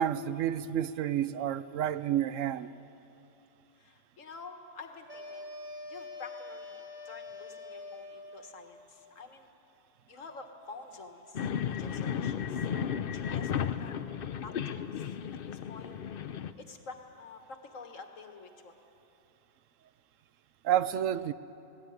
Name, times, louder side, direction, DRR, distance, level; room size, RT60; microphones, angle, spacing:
voice 1, 0.0-2.7 20.6-21.3, right 10 dB, 90° right, 14 dB, 1.0 m, -29 dB
voice 2, 3.8-5.5 5.9-9.5 10.1-12.7 13.1-14.1 14.4-16.0 16.6-18.8, left 4 dB, 85° left, 5 dB, 1.9 m, -49 dB
sound 1, 5.1-8.6, left 2 dB, 35° right, 2.5 m, -44 dB
sound 2, 11.3-16.5, left 8 dB, 55° left, 0.7 m, -34 dB
18.5 x 17.5 x 9.5 m, 2.9 s
omnidirectional pair, 1.3 m